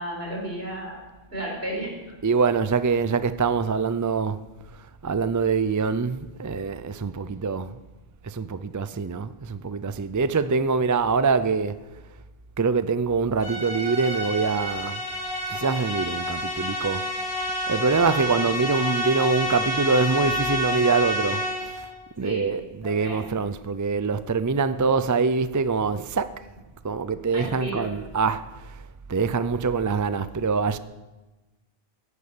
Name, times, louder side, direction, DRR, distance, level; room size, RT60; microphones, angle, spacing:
voice 1, 0.0-1.9 22.2-22.5 22.8-23.2 27.3-27.9, right 1 dB, 75° right, 4.9 m, -33 dB
voice 2, 2.2-4.4 4.7-7.8 8.2-11.8 12.6-15.0 15.5-17.0 17.7-21.9 22.2-26.3 26.8-30.8, right 4 dB, 30° right, 0.4 m, -24 dB
sound 1, 13.4-21.9, left 1 dB, 70° left, 5.2 m, -29 dB
15.5 x 11.0 x 6.7 m
omnidirectional pair, 1.1 m